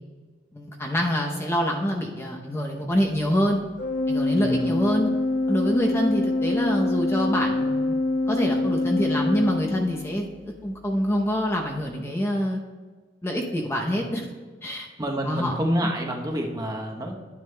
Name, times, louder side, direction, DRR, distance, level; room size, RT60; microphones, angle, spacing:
voice 1, 0.5-3.6 4.1-5.1 5.5-7.9 8.3-12.6 13.2-14.3 14.6-14.9 15.2-15.5 15.8-15.9, equal, 15° left, 0 dB, 0.7 m, -26 dB
Organ, 3.8-10.3, left 2 dB, 50° left, 0.6 m, -25 dB
voice 2, 4.4-4.7 13.9-14.0 15.0-17.2, equal, 20° right, 1 dB, 0.9 m, -28 dB
10.0 x 9.4 x 2.2 m, 1.4 s
head